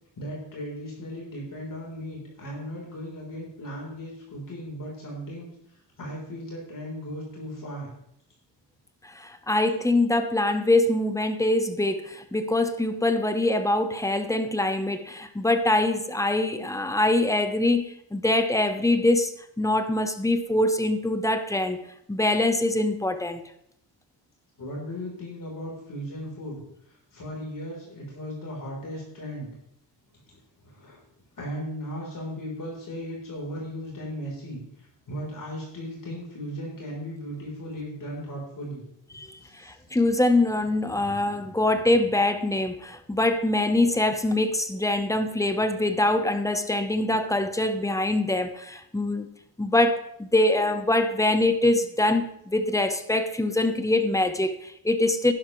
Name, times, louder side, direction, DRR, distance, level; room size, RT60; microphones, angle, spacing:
voice 1, 0.2-5.5 6.0-7.9 24.6-26.6 26.9-29.5 30.3-30.4 30.7-31.0 31.4-38.8 39.4-39.7, equal, 45° left, -3 dB, 3.7 m, -37 dB
voice 2, 9.0-21.8 22.1-23.4 39.1-49.3 49.6-55.3, left 2 dB, 5° left, 8 dB, 0.8 m, -24 dB
11.5 x 11.5 x 3.1 m, 0.76 s
wide cardioid pair, 130°, 43 cm